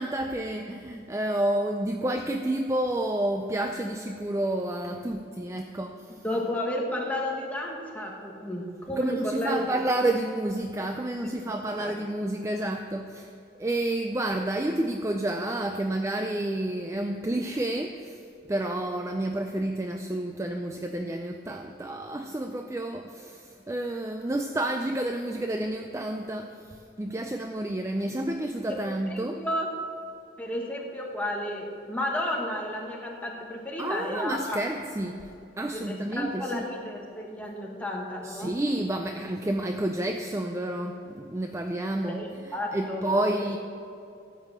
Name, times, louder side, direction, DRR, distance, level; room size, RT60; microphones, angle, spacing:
voice 1, 0.0-6.2 8.9-13.3 13.6-18.2 18.5-29.4 33.8-36.7 38.2-43.6, right 1 dB, 15° right, 4 dB, 0.4 m, -30 dB
voice 2, 6.2-9.8 11.2-12.0 29.1-29.7 30.4-34.6 35.7-38.6 42.0-43.4, left 1 dB, 10° left, -1 dB, 1.4 m, -32 dB
13.5 x 5.5 x 7.7 m, 2.7 s
head